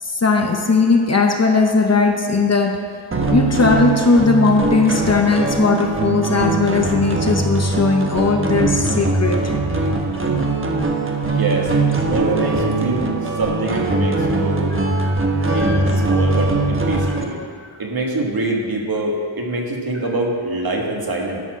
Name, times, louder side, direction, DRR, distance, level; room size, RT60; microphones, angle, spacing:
voice 1, 0.0-2.8 3.3-9.5 15.0-15.3 15.6-15.8, left 4 dB, 35° left, 3 dB, 0.8 m, -18 dB
sound 1, 3.1-17.2, right 3 dB, 25° right, 1.1 m, -21 dB
voice 2, 11.3-11.7 12.0-14.7 15.5-17.4 17.8-21.4, right 2 dB, 50° right, 0 dB, 1.6 m, -24 dB
12.0 x 4.2 x 6.1 m, 2.1 s
wide cardioid pair, 85°, 47 cm